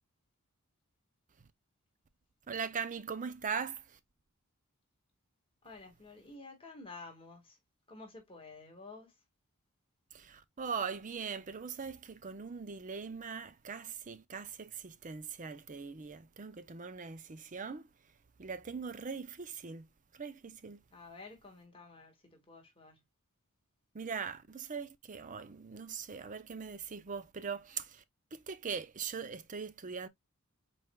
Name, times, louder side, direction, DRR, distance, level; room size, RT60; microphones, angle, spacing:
voice 1, 2.5-4.0 10.1-17.9 18.4-19.9 20.1-20.8 23.9-28.0 28.3-30.1, right 6 dB, 35° right, 0.5 m, -41 dB
voice 2, 5.6-7.6 7.9-9.2 20.9-23.0, left 3 dB, 25° left, 1.8 m, -51 dB
5.5 x 4.3 x 2.2 m
head